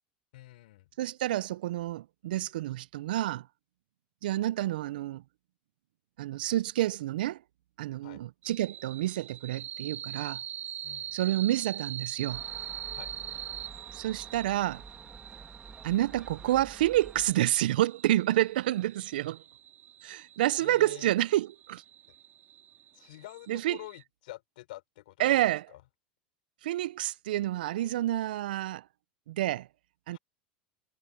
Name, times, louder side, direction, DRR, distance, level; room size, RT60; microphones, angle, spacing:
voice 1, 0.3-0.9 8.0-8.2 10.8-11.2 12.9-13.1 20.6-21.1 22.9-25.4 25.7-25.8 30.1-30.2, left 17 dB, 75° left, 5.2 m, -47 dB
voice 2, 1.0-3.5 4.2-5.2 6.2-7.4 7.8-10.4 11.1-12.4 13.9-14.8 15.8-19.4 20.0-21.8 23.5-23.8 25.2-25.7 26.6-28.8 29.3-29.7 30.1-30.2, right 14 dB, 80° right, 0.6 m, -29 dB
sound 1, 8.4-24.0, right 10 dB, 40° right, 2.3 m, -43 dB
Gull seagull, 12.3-17.3, right 4 dB, 15° right, 2.8 m, -49 dB
hypercardioid pair, 90°, 5 cm